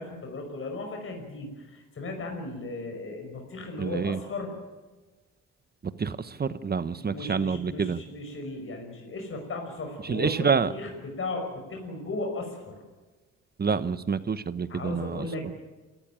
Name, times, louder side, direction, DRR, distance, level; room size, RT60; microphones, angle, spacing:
voice 1, 0.0-4.5 6.9-12.8 14.7-15.6, left 2 dB, 45° left, 2 dB, 5.8 m, -36 dB
voice 2, 3.8-4.2 6.0-8.0 10.1-10.7 13.6-15.3, right 5 dB, 30° right, 13 dB, 1.0 m, -27 dB
28.5 x 14.0 x 9.0 m, 1.3 s
cardioid pair, 90°, 30 cm